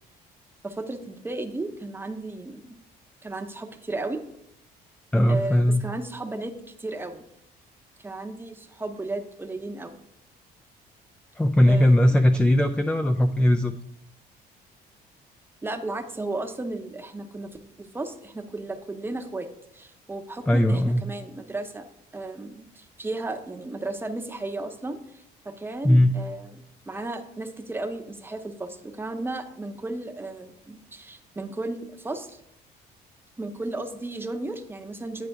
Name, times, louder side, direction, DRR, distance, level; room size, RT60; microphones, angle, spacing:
voice 1, 0.6-2.8 3.2-4.2 5.3-6.5 6.8-7.2 8.0-10.0 11.7-11.9 15.6-17.5 17.8-19.5 19.7-32.4 33.4-35.3, right 2 dB, 15° right, 6 dB, 0.7 m, -34 dB
voice 2, 5.1-5.9 11.4-13.7 20.5-21.0 25.8-26.2, left 1 dB, 5° left, 7 dB, 0.3 m, -19 dB
9.1 x 4.9 x 3.5 m, 0.77 s
cardioid pair, 110°, 17 cm